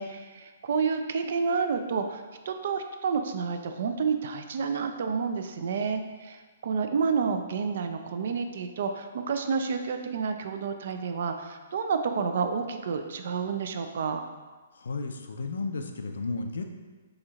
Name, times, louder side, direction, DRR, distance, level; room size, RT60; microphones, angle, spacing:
voice 1, 0.0-14.2, right 5 dB, 55° right, 7 dB, 0.3 m, -30 dB
voice 2, 14.7-16.6, left 3 dB, 90° left, 5 dB, 0.4 m, -33 dB
4.2 x 2.8 x 2.4 m, 1.3 s
hypercardioid pair, 165°, 0 cm